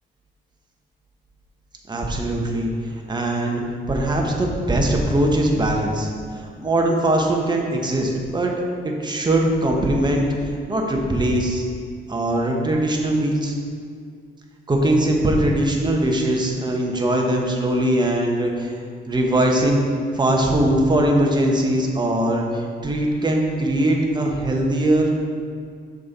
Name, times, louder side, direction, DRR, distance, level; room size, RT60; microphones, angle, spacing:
voice 1, 1.9-2.7 3.1-3.6 3.9-6.1 6.6-10.2 10.7-11.6 12.1-13.5 14.7-18.7 19.1-19.8 20.1-25.1, right 1 dB, 20° right, 0 dB, 1.2 m, -21 dB
6.5 x 5.3 x 4.3 m, 2.2 s
cardioid pair, 90°, 20 cm